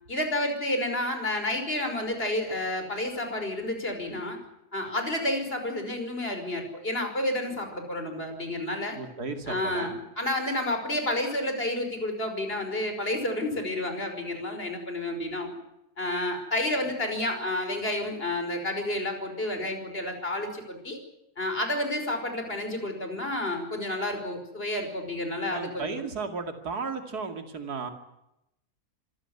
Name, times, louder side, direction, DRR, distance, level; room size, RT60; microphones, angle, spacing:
voice 1, 0.1-4.4 4.7-9.0 9.5-15.5 16.0-21.0 21.4-26.0, left 1 dB, 35° left, 6 dB, 5.6 m, -30 dB
voice 2, 9.0-10.0 25.5-27.9, right 4 dB, 75° right, 6 dB, 3.0 m, -34 dB
26.0 x 16.0 x 9.7 m, 0.85 s
omnidirectional pair, 1.7 m